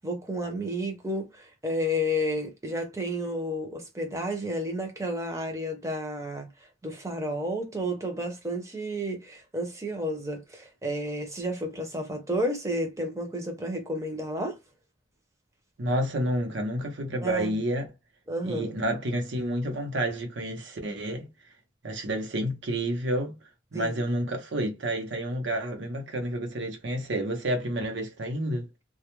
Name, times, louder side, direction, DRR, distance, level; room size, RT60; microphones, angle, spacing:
voice 1, 0.0-6.5 6.8-14.6 17.2-17.5 18.3-18.8 23.7-23.9, equal, 15° right, 0.6 m, -31 dB
voice 2, 15.8-17.9 18.4-21.3 21.8-23.3 23.7-28.7, right 1 dB, 75° right, 0.8 m, -29 dB
2.3 x 2.1 x 3.0 m
head